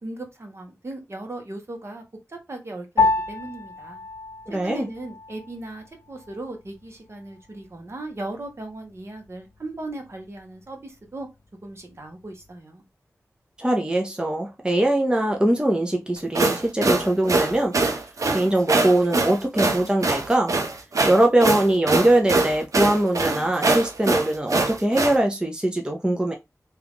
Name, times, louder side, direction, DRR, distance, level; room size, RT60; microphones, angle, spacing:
voice 1, 0.0-2.0 2.3-4.0 4.5-11.3 11.6-12.8, right 2 dB, 50° right, 1.1 m, -37 dB
Piano, 3.0-12.6, left 3 dB, 70° left, 0.7 m, -31 dB
voice 2, 4.5-4.9 13.6-17.8 18.3-20.5 21.0-26.3, right 1 dB, 15° right, 0.6 m, -22 dB
sound 1, 16.2-25.2, right 3 dB, 75° right, 0.6 m, -23 dB
2.9 x 2.5 x 3.5 m
wide cardioid pair, 60°, 6 cm